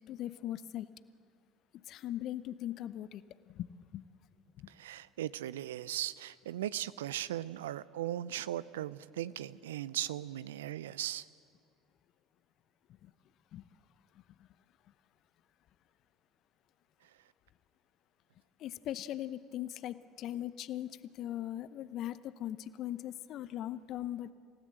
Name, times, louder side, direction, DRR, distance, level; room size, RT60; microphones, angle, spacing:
voice 1, 0.1-0.9 1.9-4.0 4.6-4.7 13.0-13.1 13.5-13.6 18.6-24.3, left 12 dB, 55° left, 15 dB, 0.8 m, -40 dB
voice 2, 4.8-11.2, right 12 dB, 75° right, 17 dB, 0.5 m, -38 dB
28.0 x 17.0 x 7.8 m, 2.2 s
figure-of-eight pair, 60°, 0 cm